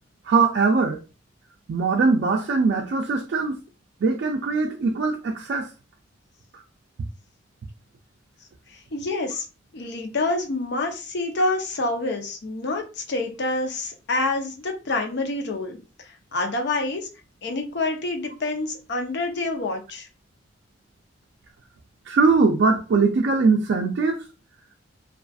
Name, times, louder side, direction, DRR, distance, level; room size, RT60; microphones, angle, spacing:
voice 1, 0.3-1.0 1.7-3.6 4.0-5.7 22.1-24.2, right 4 dB, 65° right, 0.3 m, -21 dB
voice 2, 8.7-9.5 9.7-17.1 17.4-20.1, left 2 dB, 65° left, 0.6 m, -27 dB
2.5 x 2.4 x 2.3 m
head